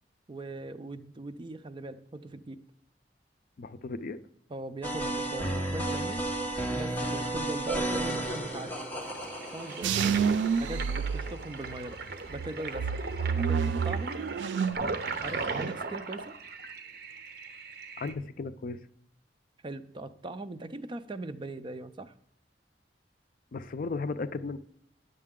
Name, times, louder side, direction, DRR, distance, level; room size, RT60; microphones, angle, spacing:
voice 1, 0.3-2.6 4.5-6.3 6.7-8.7 9.5-10.2 10.6-12.0 12.3-12.9 13.4-14.2 15.2-16.3 19.6-22.1, right 2 dB, 30° right, 11 dB, 0.4 m, -40 dB
voice 2, 3.6-4.2 18.0-18.8 23.5-24.6, left 3 dB, 50° left, 13 dB, 0.4 m, -35 dB
sound 1, 4.8-12.0, right 1 dB, 10° left, 1.2 m, -33 dB
Toilet flush, 9.0-18.1, right 4 dB, 60° right, 0.8 m, -38 dB
sound 2, 9.8-11.9 12.3-14.9 15.2-15.8, right 6 dB, 90° right, 0.4 m, -29 dB
9.7 x 6.6 x 3.6 m, 0.70 s
head